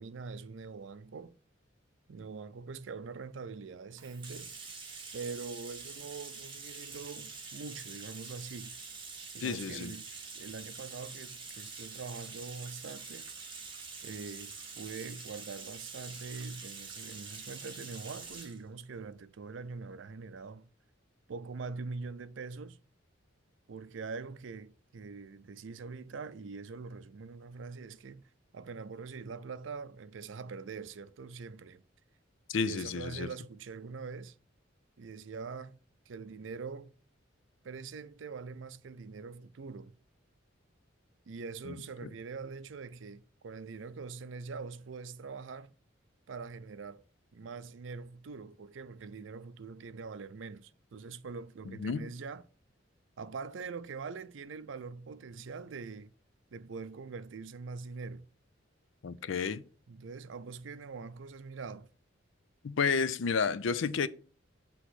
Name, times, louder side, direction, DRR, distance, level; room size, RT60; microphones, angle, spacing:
voice 1, 0.0-1.3 2.1-4.5 5.1-8.8 9.3-10.1 10.3-13.3 14.0-20.7 21.3-22.8 23.7-31.8 32.5-34.4 35.0-35.8 36.1-36.9 37.6-40.0 41.3-45.7 46.3-47.0 47.3-52.4 53.2-56.1 56.5-58.3 59.9-61.9, right 4 dB, 70° right, 0.5 m, -43 dB
Bathtub (filling or washing), 3.9-18.6, right 4 dB, 25° right, 1.4 m, -46 dB
voice 2, 9.4-9.9 32.5-33.3 41.7-41.8 51.7-52.1 59.0-59.6 62.6-64.1, left 5 dB, 75° left, 0.5 m, -31 dB
8.0 x 3.0 x 5.8 m
head